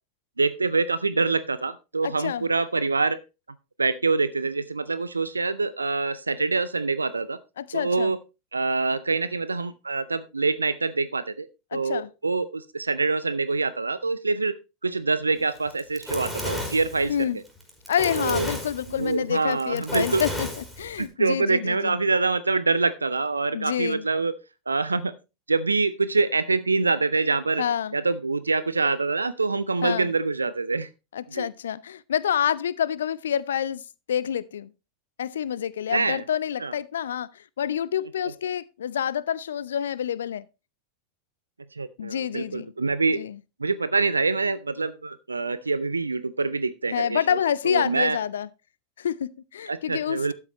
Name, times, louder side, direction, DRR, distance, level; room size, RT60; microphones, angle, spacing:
voice 1, 0.4-3.2 3.8-7.4 7.7-8.2 8.5-11.5 11.7-14.6 14.8-17.3 18.2-18.5 19.0-20.2 21.0-24.3 24.7-25.1 25.5-27.6 27.9-30.9 31.3-31.5 35.9-36.2 36.6-36.7 41.8-43.2 43.6-47.4 47.6-48.2 49.7-50.3, right 3 dB, 80° right, 0.5 m, -25 dB
voice 2, 2.0-2.5 7.6-8.1 11.7-12.1 17.1-17.4 17.9-22.0 23.5-24.0 27.6-27.9 29.8-30.1 31.1-33.8 34.1-34.7 35.2-40.5 42.0-42.7 43.1-43.4 46.9-48.5 49.0-50.3, left 9 dB, 65° left, 0.4 m, -28 dB
Fire, 15.6-21.1, left 1 dB, ahead, 4.4 m, -33 dB
12.5 x 9.0 x 3.0 m
figure-of-eight pair, 90°, 0 cm